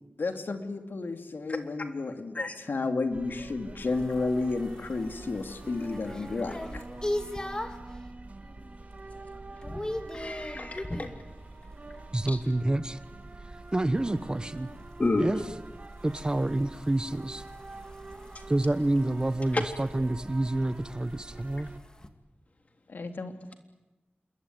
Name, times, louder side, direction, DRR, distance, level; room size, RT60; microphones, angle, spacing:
voice 1, 0.2-6.8 22.9-23.5, left 3 dB, 80° left, 6 dB, 2.8 m, -32 dB
sound 1, 3.1-21.8, right 2 dB, 45° right, 2.2 m, -45 dB
sound 2, 3.8-7.9 8.4-8.8 9.1-11.2 13.7-22.1, left 1 dB, 20° left, 2.2 m, -41 dB
voice 2, 10.1-11.1 12.3-12.4 15.0-15.3, left 2 dB, 45° left, 5 dB, 3.6 m, -30 dB
voice 3, 12.1-13.0 13.7-14.7 15.2-15.4 16.0-17.4 18.5-21.7, right 1 dB, 25° right, 13 dB, 1.2 m, -28 dB
27.5 x 22.5 x 9.5 m, 1.1 s
wide cardioid pair, 95°, 3 cm